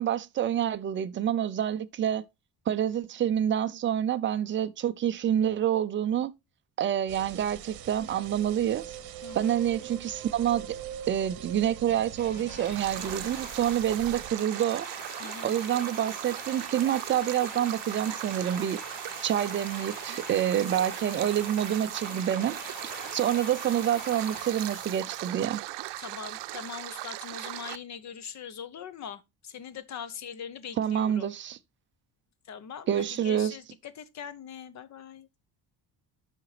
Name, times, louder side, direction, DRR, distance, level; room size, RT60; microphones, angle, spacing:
voice 1, 0.0-2.3 2.7-6.3 6.8-9.0 9.4-10.7 11.1-14.9 15.4-18.8 19.2-22.6 23.1-25.6 30.8-31.6 32.9-33.5, right 10 dB, 30° right, 0.4 m, -27 dB
sound 1, 7.1-14.3, right 10 dB, 60° right, 0.9 m, -42 dB
voice 2, 9.2-9.6 15.2-15.6 22.9-23.2 26.0-31.3 32.4-35.3, left 7 dB, 40° left, 0.7 m, -42 dB
sound 2, 12.2-25.8 26.6-26.7, equal, 20° left, 3.5 m, -43 dB
Stream, 12.8-27.8, right 18 dB, 80° right, 0.6 m, -39 dB
9.4 x 5.8 x 3.2 m
cardioid pair, 180°, 41 cm